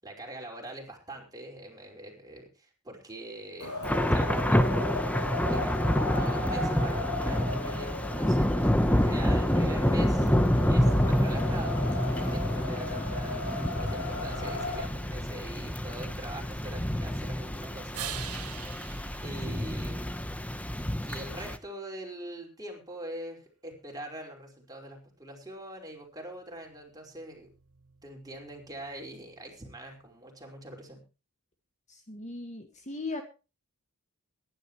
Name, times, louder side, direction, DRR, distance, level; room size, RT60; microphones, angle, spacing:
voice 1, 0.0-3.7 4.1-4.7 5.5-10.3 10.7-13.4 13.8-18.2 19.2-20.1 21.0-27.5 28.0-31.0, right 1 dB, 15° right, 0 dB, 5.2 m, -43 dB
Wind, 3.6-14.8, left 2 dB, 85° left, 6.5 m, -37 dB
Thunder / Rain, 3.8-21.6, equal, 5° left, 1.0 m, -28 dB
sound 1, 17.9-20.5 26.2-30.2, right 11 dB, 80° right, 1.4 m, -46 dB
voice 2, 31.9-33.2, left 3 dB, 35° left, 5 dB, 1.9 m, -38 dB
22.0 x 11.5 x 3.2 m, 0.32 s
head